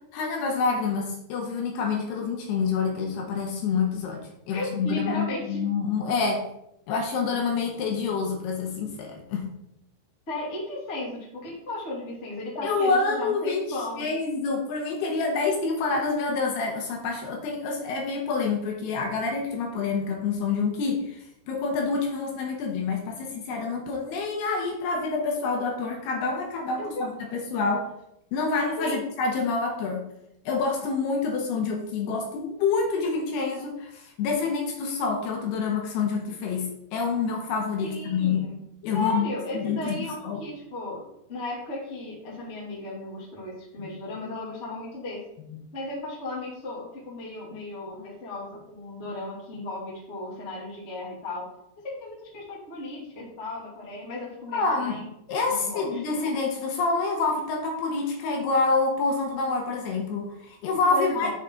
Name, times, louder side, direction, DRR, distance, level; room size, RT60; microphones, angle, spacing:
voice 1, 0.1-6.4 6.9-9.5 12.6-27.9 28.3-30.1 30.5-38.5 38.8-39.2 39.5-40.4 43.8-43.9 45.5-45.6 54.5-55.0 55.3-61.3, left 4 dB, 75° left, 1 dB, 2.8 m, -27 dB
voice 2, 4.5-5.6 10.3-14.1 26.8-26.9 28.8-29.0 37.8-38.6 38.9-41.0 41.3-45.2 45.7-51.5 51.8-55.1 55.4-56.2 60.9-61.3, left 2 dB, 25° left, -6 dB, 1.5 m, -35 dB
6.8 x 6.3 x 3.7 m, 0.80 s
omnidirectional pair, 5.0 m